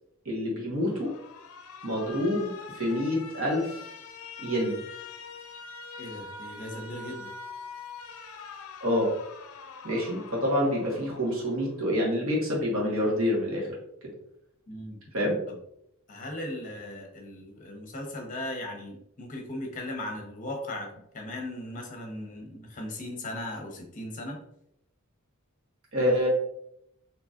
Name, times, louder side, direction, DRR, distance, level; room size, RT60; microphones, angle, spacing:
voice 1, 0.2-1.1 1.8-3.8 4.4-4.8 8.8-9.1 9.8-13.7 15.1-15.3 25.9-26.3, left 1 dB, 75° right, -4 dB, 1.3 m, -27 dB
Alarm, 0.8-11.8, left 4 dB, 80° left, 0.4 m, -44 dB
voice 2, 6.0-7.3 14.7-15.0 15.5-15.6 16.1-24.4, left 1 dB, 35° left, 1 dB, 0.8 m, -38 dB
3.9 x 2.9 x 2.4 m, 0.78 s
head